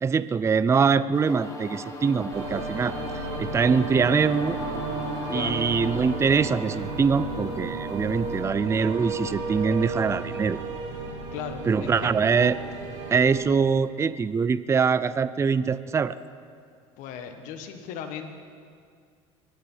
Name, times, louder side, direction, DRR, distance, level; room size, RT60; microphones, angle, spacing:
voice 1, 0.0-3.0 3.4-4.6 5.3-10.6 11.7-12.6 13.1-16.2, right 5 dB, 20° right, 15 dB, 0.5 m, -23 dB
sound 1, 1.1-8.4, left 2 dB, 20° left, 2.2 m, -38 dB
sound 2, 2.3-13.3, right 3 dB, 65° right, 4.5 m, -33 dB
voice 2, 5.3-5.6 11.3-12.1 17.0-18.4, left 8 dB, 65° left, 6 dB, 1.5 m, -37 dB
24.0 x 9.8 x 5.6 m, 2.2 s
supercardioid pair, 90°, 14 cm